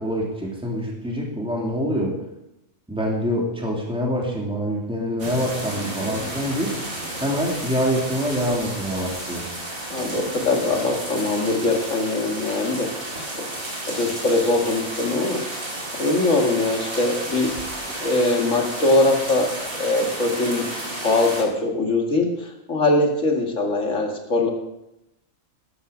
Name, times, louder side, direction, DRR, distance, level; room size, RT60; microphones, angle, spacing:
voice 1, 0.0-2.1 2.9-6.8 7.2-9.4, equal, 5° right, -2 dB, 2.8 m, -25 dB
sound 1, 5.2-21.4, right 1 dB, 85° right, 2.8 m, -32 dB
voice 2, 9.9-12.9 13.9-15.4 16.0-17.5 18.0-20.7 21.0-22.3 22.7-24.5, left 2 dB, 65° left, 1 dB, 2.4 m, -22 dB
12.5 x 11.5 x 5.1 m, 0.89 s
omnidirectional pair, 1.4 m